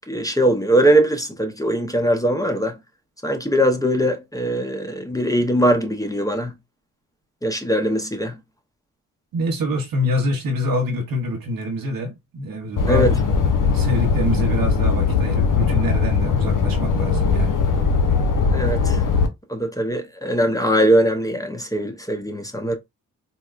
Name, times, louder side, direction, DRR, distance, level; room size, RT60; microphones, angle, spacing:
voice 1, 0.1-2.8 3.2-6.5 7.4-8.4 12.9-13.2 18.5-19.0 19.5-22.8, right 1 dB, 10° left, 0.8 m, -21 dB
voice 2, 9.3-13.1 13.6-17.6, equal, 70° right, 1.0 m, -25 dB
sound 1, 12.8-19.3, left 5 dB, 60° left, 0.9 m, -19 dB
4.2 x 2.2 x 2.4 m
supercardioid pair, 45°, 36 cm